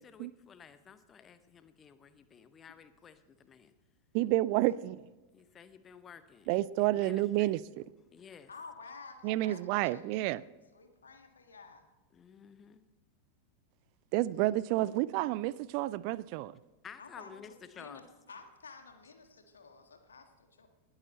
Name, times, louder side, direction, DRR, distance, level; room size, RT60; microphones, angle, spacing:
voice 1, 0.0-3.7 5.3-7.5 8.1-8.5 12.1-12.8 16.8-18.1, left 7 dB, 25° left, 0.8 m, -53 dB
voice 2, 4.1-5.0 6.5-7.6 9.2-10.4 14.1-16.5, right 17 dB, 45° right, 0.4 m, -30 dB
voice 3, 8.5-10.4 10.7-11.9 17.0-20.7, left 4 dB, 70° left, 1.7 m, -52 dB
20.0 x 8.9 x 4.2 m
figure-of-eight pair, 90°, 0 cm